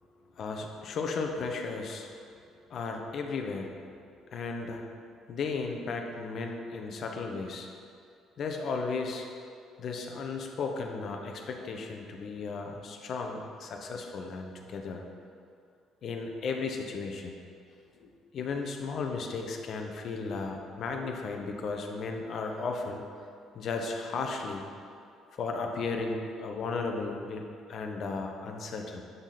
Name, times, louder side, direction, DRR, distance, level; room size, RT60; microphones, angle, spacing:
voice 1, 0.3-2.4 2.7-3.8 4.3-4.9 5.3-7.7 8.4-9.3 9.8-15.0 16.0-17.4 18.0-23.0 23.5-24.6 25.4-27.4 27.7-29.0, left 4 dB, 55° left, 3 dB, 1.0 m, -35 dB
9.5 x 6.1 x 4.2 m, 2.4 s
hypercardioid pair, 50°, 0 cm